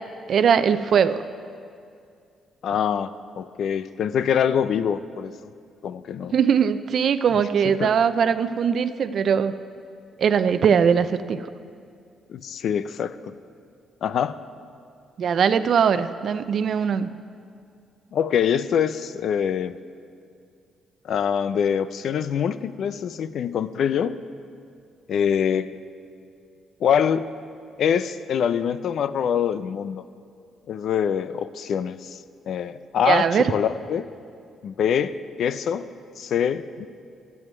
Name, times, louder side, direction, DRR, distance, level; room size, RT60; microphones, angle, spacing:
voice 1, 0.3-1.2 6.3-9.5 10.2-11.4 15.2-17.1 33.1-33.5, right 7 dB, 60° right, 12 dB, 0.5 m, -20 dB
voice 2, 2.6-3.1 3.4-5.3 5.8-6.3 7.8-8.0 12.3-13.1 14.0-14.4 18.1-19.7 21.0-24.2 25.1-25.7 26.8-27.3 27.8-30.0 30.7-32.2 32.5-34.1 34.6-35.9 36.2-36.9, left 8 dB, 65° left, 13 dB, 0.5 m, -24 dB
11.0 x 7.9 x 9.2 m, 2.3 s
cardioid pair, 90°, 0 cm